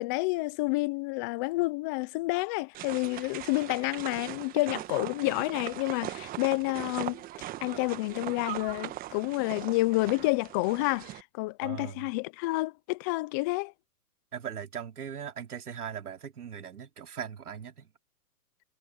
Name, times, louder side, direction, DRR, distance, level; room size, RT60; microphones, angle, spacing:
voice 1, 0.0-7.2 7.6-13.7, left 23 dB, 15° left, 0.5 m, -29 dB
sound 1, 2.7-11.2, right 15 dB, 20° right, 1.3 m, -40 dB
voice 2, 11.6-12.1 14.3-17.9, right 8 dB, 75° right, 4.0 m, -39 dB
hypercardioid pair, 130°, 46 cm